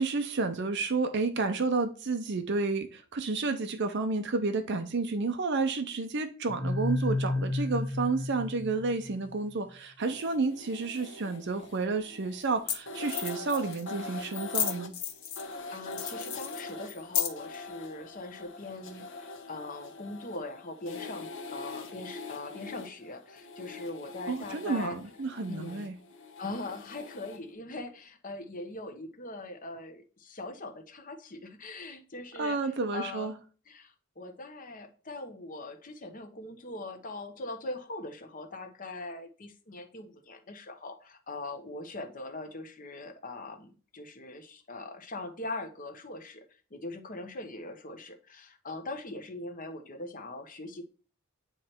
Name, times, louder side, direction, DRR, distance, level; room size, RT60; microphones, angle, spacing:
voice 1, 0.0-14.9 24.3-26.0 32.4-33.3, right 3 dB, 55° right, 0.6 m, -31 dB
sound 1, 6.5-9.3, left 2 dB, 10° left, 0.7 m, -31 dB
sound 2, 10.0-27.5, left 3 dB, 60° left, 1.3 m, -44 dB
sound 3, 11.6-11.7 12.4-12.5 12.7-12.8 13.0-13.8 14.3-15.5 15.9-17.5, left 10 dB, 85° left, 1.5 m, -33 dB
voice 2, 15.4-25.0 25.5-25.9 26.4-33.3 33.7-46.4 46.7-50.8, left 2 dB, 40° left, 1.1 m, -41 dB
9.5 x 3.2 x 4.5 m
head